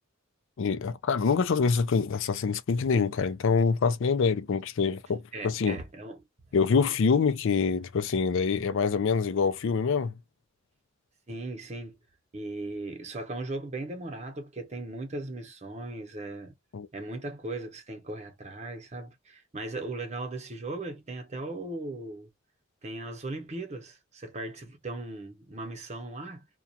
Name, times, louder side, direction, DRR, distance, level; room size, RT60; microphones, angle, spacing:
voice 1, 0.6-5.8 6.5-10.1 16.7-16.9, left 5 dB, 65° left, 0.4 m, -25 dB
voice 2, 5.3-6.2 11.3-11.9 12.3-16.5 16.9-22.3 22.8-26.5, right 2 dB, 35° right, 0.8 m, -38 dB
2.4 x 2.2 x 2.6 m
head